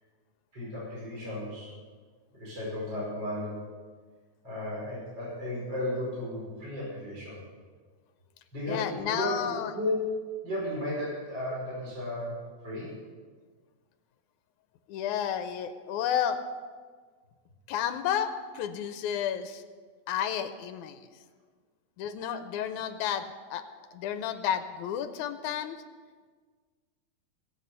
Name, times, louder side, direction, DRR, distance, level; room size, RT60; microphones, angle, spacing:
voice 1, 0.5-1.7 2.3-3.6 4.4-7.4 8.5-10.1 10.4-12.9, left 1 dB, 35° right, -6 dB, 5.9 m, -34 dB
voice 2, 8.7-9.7 14.9-16.4 17.7-19.6 20.1-21.0 22.0-23.7 23.9-25.8, left 9 dB, 85° left, 10 dB, 2.1 m, -31 dB
21.0 x 7.9 x 5.5 m, 1.5 s
omnidirectional pair, 3.5 m